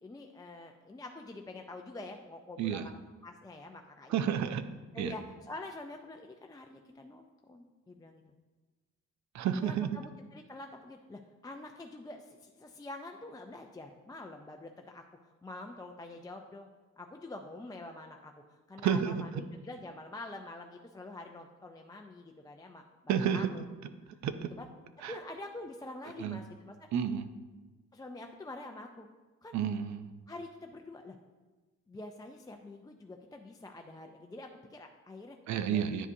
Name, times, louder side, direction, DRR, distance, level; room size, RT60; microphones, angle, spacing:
voice 1, 0.0-2.9 3.2-4.3 4.9-8.2 9.6-16.7 17.0-23.6 24.6-24.7 25.1-26.8 27.9-29.1 29.4-29.6 30.3-31.2 31.9-35.4 35.7-35.8, left 2 dB, 15° left, 3 dB, 0.4 m, -46 dB
voice 2, 4.1-4.7 5.0-5.1 9.3-9.9 18.8-19.2 23.1-23.5 24.2-24.5 25.0-25.2 26.2-26.4 26.9-27.3 29.5-30.1 35.5-36.1, right 8 dB, 70° right, 11 dB, 0.6 m, -30 dB
9.7 x 4.9 x 2.7 m, 1.3 s
cardioid pair, 90°, 30 cm